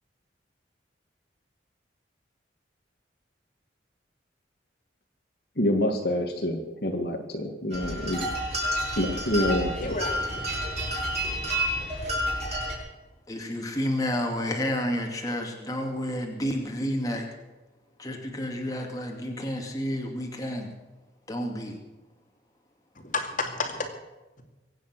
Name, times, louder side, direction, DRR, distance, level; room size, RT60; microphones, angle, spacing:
voice 1, 5.6-8.3 9.0-9.9, left 1 dB, 60° left, 2 dB, 2.1 m, -27 dB
sound 1, 7.7-12.8, equal, 35° right, 7.5 m, -30 dB
voice 2, 9.8-10.4 11.2-11.5 23.0-23.9, left 3 dB, 45° left, 4 dB, 2.4 m, -32 dB
voice 3, 13.3-17.3 18.0-20.7 21.3-21.8, equal, 20° left, 1 dB, 2.5 m, -30 dB
24.0 x 9.3 x 6.2 m, 1.1 s
head